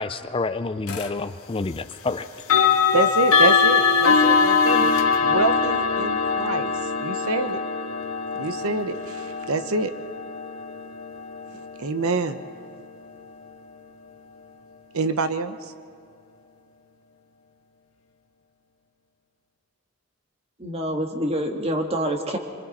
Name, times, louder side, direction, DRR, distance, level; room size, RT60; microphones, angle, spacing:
voice 1, 0.0-2.3, left 3 dB, 25° left, 11 dB, 0.4 m, -28 dB
sound 1, 0.9-1.1 2.4-13.3, left 5 dB, 75° left, 1.7 m, -22 dB
voice 2, 2.9-4.9 5.2-7.6 8.3-9.9 11.5-12.4 14.9-15.7, right 3 dB, 80° right, 10 dB, 0.9 m, -26 dB
voice 3, 20.6-22.4, equal, 30° right, 3 dB, 1.7 m, -26 dB
25.0 x 25.0 x 4.2 m, 2.3 s
head